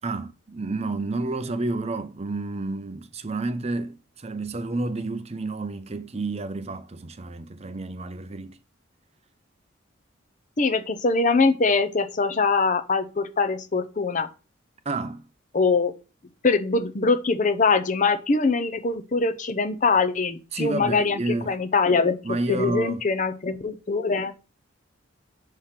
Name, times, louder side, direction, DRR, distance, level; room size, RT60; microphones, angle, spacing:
voice 1, 0.0-8.6 14.9-15.3 20.5-21.6 22.2-23.0, right 2 dB, 30° right, 0.6 m, -30 dB
voice 2, 10.6-14.3 15.5-15.9 16.4-24.3, left 4 dB, 40° left, 0.6 m, -23 dB
5.7 x 5.0 x 5.8 m
head